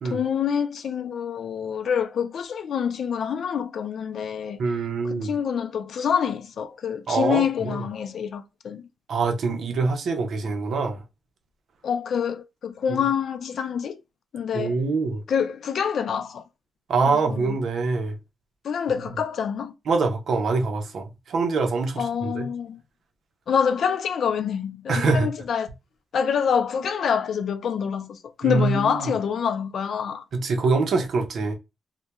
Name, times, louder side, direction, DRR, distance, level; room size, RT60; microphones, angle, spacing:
voice 1, 0.0-4.6 5.0-8.8 11.8-14.0 14.3-14.8 15.3-16.4 17.0-17.6 18.6-19.7 22.0-22.8 23.5-25.7 26.1-30.2, left 7 dB, 65° left, 0.3 m, -26 dB
voice 2, 4.6-5.3 7.1-7.8 9.1-11.0 12.9-13.0 14.5-15.2 16.9-18.1 19.9-22.5 24.9-25.3 28.4-29.1 30.3-31.5, right 4 dB, 70° right, 0.6 m, -24 dB
2.2 x 2.1 x 2.9 m
cardioid pair, 90°, 0 cm